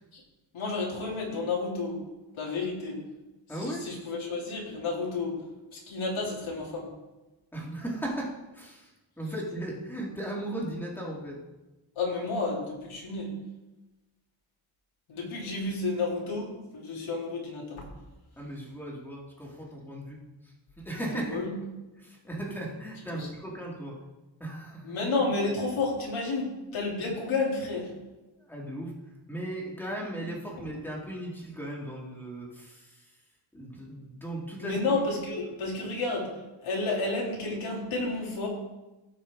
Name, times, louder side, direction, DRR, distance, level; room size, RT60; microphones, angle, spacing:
voice 1, 0.5-2.0 2.3-3.0 3.6-5.3 5.7-6.9 11.9-13.3 15.1-17.8 21.1-21.5 23.1-23.3 24.8-27.9 34.6-36.3 36.6-38.5, left 3 dB, 75° left, -3 dB, 3.1 m, -31 dB
voice 2, 3.5-3.9 7.5-11.4 18.4-21.4 22.0-24.0 24.4-25.0 28.4-28.9 29.3-33.1 33.5-34.8, right 1 dB, 5° left, -4 dB, 2.7 m, -37 dB
16.5 x 6.2 x 3.7 m, 1.1 s
wide cardioid pair, 125°, 48 cm